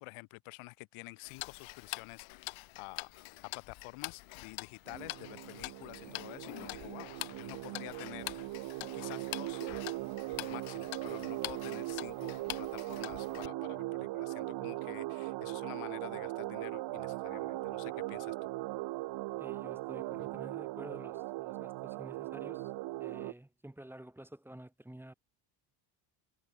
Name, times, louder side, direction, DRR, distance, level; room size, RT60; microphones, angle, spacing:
voice 1, 0.0-3.1 3.4-8.3 8.9-9.9 10.4-18.3, left 25 dB, 85° left, 1.5 m, -49 dB
Tick-tock, 1.2-13.5, left 21 dB, 65° left, 0.8 m, -45 dB
sound 1, 4.9-23.3, right 19 dB, 55° right, 0.6 m, -39 dB
voice 2, 19.4-22.7 23.0-25.1, right 1 dB, 5° right, 1.8 m, -50 dB
cardioid pair, 145°, 49 cm